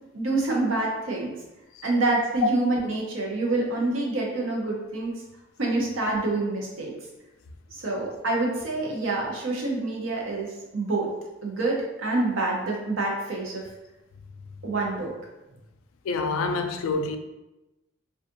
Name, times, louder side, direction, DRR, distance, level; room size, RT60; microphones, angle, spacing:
voice 1, 0.1-1.3 1.8-5.1 5.6-6.9 7.7-11.1 11.4-13.6 14.6-15.1, right 2 dB, 75° right, 0.7 m, -27 dB
voice 2, 16.0-17.2, left 3 dB, 85° left, 0.3 m, -27 dB
2.5 x 2.4 x 2.5 m
head